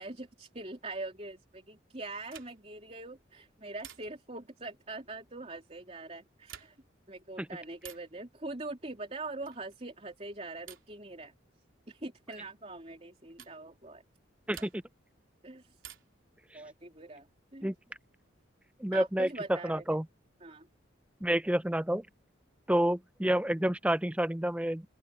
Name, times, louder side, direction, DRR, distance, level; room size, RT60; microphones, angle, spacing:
voice 1, 0.0-6.8 7.1-11.3 11.9-14.0 14.6-14.7 15.4-15.8 16.5-17.7 18.9-19.8 20.4-20.7, right 2 dB, 30° right, 3.6 m, -43 dB
sound 1, 2.3-2.8 3.8-4.4 6.3-7.0 7.8-8.2 9.4-9.8 10.7-11.0 12.3-12.5 13.4-13.6 14.5-15.1 15.8-16.3 17.7-18.4, right 10 dB, 80° right, 3.5 m, -52 dB
voice 2, 14.5-14.8 17.6-17.7 18.8-19.3 19.6-20.0 21.2-22.0 22.7-24.8, right 1 dB, 5° right, 0.5 m, -29 dB
open air
head